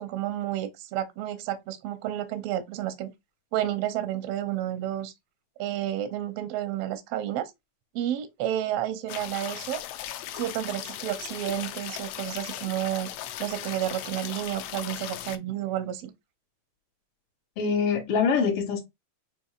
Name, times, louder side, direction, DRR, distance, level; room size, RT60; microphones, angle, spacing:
voice 1, 0.0-3.1 3.5-5.1 5.6-7.5 7.9-9.8 10.3-13.1 13.4-16.1, right 12 dB, 80° right, 1.4 m, -31 dB
sound 1, 9.1-15.4, left 12 dB, 85° left, 1.4 m, -37 dB
voice 2, 17.6-18.8, left 5 dB, 60° left, 1.9 m, -24 dB
6.5 x 3.0 x 2.3 m
omnidirectional pair, 3.4 m